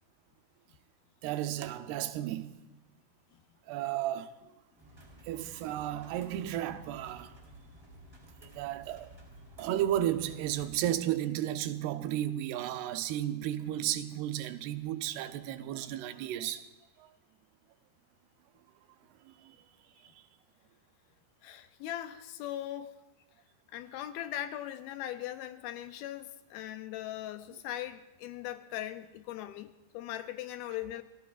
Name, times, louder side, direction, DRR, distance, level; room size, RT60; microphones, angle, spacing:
voice 1, 1.2-2.5 3.7-4.3 5.2-7.3 8.4-9.1 9.6-16.7 17.0-17.1 19.2-19.6 20.0-20.2, right 12 dB, 85° right, 2.8 m, -33 dB
sound 1, 4.8-11.0, right 1 dB, 5° right, 3.6 m, -54 dB
voice 2, 21.4-22.9 23.7-31.0, left 12 dB, 80° left, 2.4 m, -39 dB
30.0 x 15.5 x 2.5 m
omnidirectional pair, 4.6 m